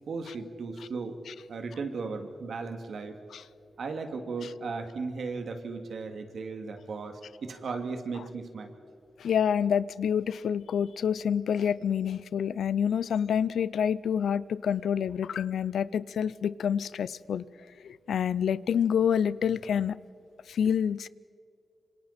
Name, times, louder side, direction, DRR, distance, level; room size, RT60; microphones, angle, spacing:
voice 1, 0.1-1.2 1.5-3.2 3.8-8.7, right 4 dB, 70° right, 2.4 m, -36 dB
voice 2, 9.2-17.4 17.8-19.9 20.5-21.1, left 8 dB, 85° left, 0.5 m, -27 dB
27.0 x 25.5 x 4.3 m
cardioid pair, 95°, 0 cm